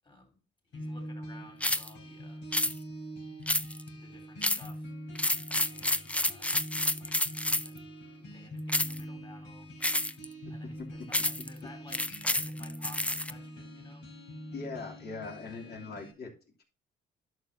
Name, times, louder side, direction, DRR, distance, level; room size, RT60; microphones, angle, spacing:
voice 1, 0.0-0.4 0.7-2.4 2.9-3.1 4.0-4.9 5.6-6.5 7.0-7.2 7.5-8.0 8.2-9.7 10.5-14.1, left 2 dB, 25° left, 2 dB, 3.9 m, -54 dB
sound 1, 0.7-16.1, equal, 75° left, 4.1 m, -44 dB
sound 2, 1.6-1.9 2.5-2.7 3.5-3.9 4.4-4.7 5.1-7.8 8.7-9.0 9.8-10.2 11.1-11.5 11.9-13.3, left 1 dB, 5° left, 0.5 m, -29 dB
voice 2, 14.5-16.3, left 4 dB, 55° left, 0 dB, 3.1 m, -40 dB
11.0 x 6.4 x 2.7 m, 0.34 s
cardioid pair, 90°, 20 cm